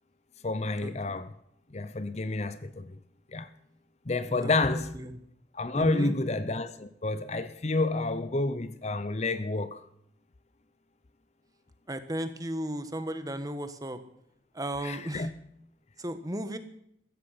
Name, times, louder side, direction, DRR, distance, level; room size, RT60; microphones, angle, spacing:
voice 1, 0.4-1.3 1.7-3.0 3.3-3.5 4.1-4.9 5.5-9.8 14.8-15.3, left 2 dB, 40° left, 0.7 m, -29 dB
voice 2, 4.3-5.2 5.7-6.1 11.9-14.0 14.5-15.3 16.0-16.6, right 1 dB, 20° right, 1.4 m, -35 dB
15.5 x 13.5 x 5.8 m
head